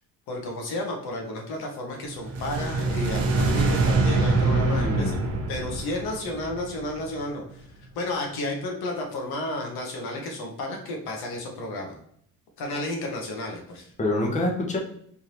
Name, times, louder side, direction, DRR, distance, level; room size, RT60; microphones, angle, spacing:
voice 1, 0.3-5.2 5.5-7.7 7.9-12.0 12.6-13.9, left 1 dB, 80° left, 1 dB, 1.1 m, -32 dB
sound 1, 2.1-7.3, right 3 dB, 40° right, 0.7 m, -25 dB
voice 2, 4.4-5.2 14.0-14.8, left 1 dB, 20° left, 0 dB, 0.8 m, -26 dB
3.6 x 2.7 x 3.0 m, 0.66 s
cardioid pair, 125°, 37 cm